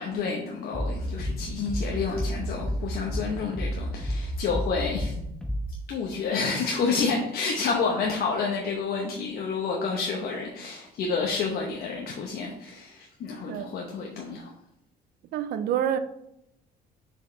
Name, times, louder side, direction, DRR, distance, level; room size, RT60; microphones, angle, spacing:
voice 1, 0.0-5.1 5.9-14.5, left 4 dB, 65° left, 1.0 m, -29 dB
sound 1, 0.7-5.7, equal, 5° left, 1.3 m, -31 dB
voice 2, 15.3-16.0, right 9 dB, 70° right, 0.6 m, -27 dB
6.3 x 4.9 x 3.3 m
cardioid pair, 110°, 17 cm